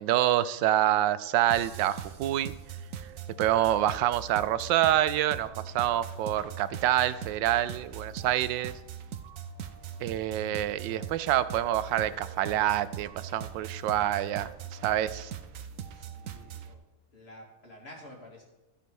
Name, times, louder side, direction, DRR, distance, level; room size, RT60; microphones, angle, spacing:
voice 1, 0.0-2.5 3.4-8.7 10.0-14.5 14.8-15.3, right 12 dB, 80° right, 14 dB, 1.2 m, -27 dB
sound 1, 1.5-16.7, right 8 dB, 65° right, 0.8 m, -41 dB
voice 2, 15.9-16.8 17.1-18.4, left 1 dB, 35° left, -2 dB, 2.5 m, -50 dB
14.0 x 4.7 x 5.3 m, 1.0 s
omnidirectional pair, 2.0 m